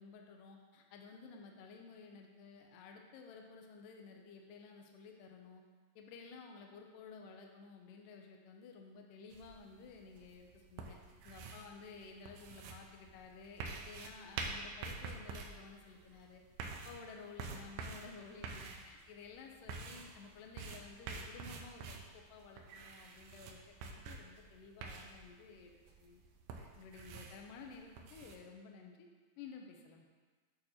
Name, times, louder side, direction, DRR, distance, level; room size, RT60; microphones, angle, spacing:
voice 1, 0.0-5.6 6.0-11.0 11.2-16.4 16.9-26.2 26.8-29.1 29.4-30.0, left 5 dB, 80° left, 2 dB, 2.2 m, -54 dB
sound 1, 9.3-28.4, right 4 dB, 80° right, 2.3 m, -48 dB
8.9 x 6.2 x 2.9 m, 1.4 s
omnidirectional pair, 4.1 m